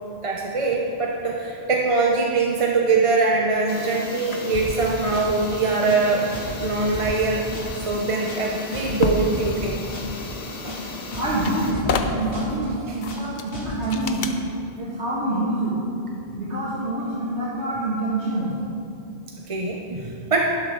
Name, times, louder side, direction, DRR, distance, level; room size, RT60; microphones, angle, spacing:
voice 1, 0.2-6.3 6.6-7.4 7.7-9.8 10.6-10.8 12.8-13.0 19.5-20.6, right 3 dB, 35° right, -1 dB, 0.7 m, -23 dB
sound 1, 3.7-11.7, left 3 dB, 70° left, 1.4 m, -36 dB
sound 2, 4.5-4.9 5.1-5.5 5.7-6.1 6.3-6.7 6.9-7.3 7.5-7.9 8.1-8.5 8.7-9.1 9.3-9.7 9.9-10.3 10.5-10.9 11.1-11.5 11.7-12.1 12.3-12.7 12.9-13.3 13.5-13.9, left 2 dB, 90° left, 2.8 m, -34 dB
sound 3, 8.6-9.4 10.8-10.9 11.1-12.5 13.0-13.5 13.9-14.4, left 5 dB, 50° left, 0.8 m, -28 dB
voice 2, 11.1-14.2 14.8-15.7 16.4-18.5, right 1 dB, 90° right, -10 dB, 2.4 m, -26 dB
12.0 x 11.0 x 3.8 m, 2.7 s
omnidirectional pair, 1.1 m